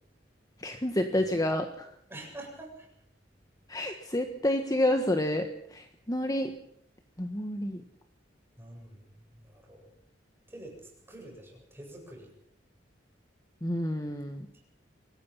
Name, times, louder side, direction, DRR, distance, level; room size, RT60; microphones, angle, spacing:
voice 1, 0.6-1.9 3.7-6.5 7.2-7.8 13.6-14.5, left 1 dB, 20° left, 6 dB, 1.4 m, -29 dB
voice 2, 2.1-2.9 8.6-9.1 9.5-9.9 10.5-10.8 11.1-12.3, right 1 dB, 15° right, 0 dB, 8.0 m, -46 dB
25.0 x 18.5 x 5.7 m, 0.70 s
head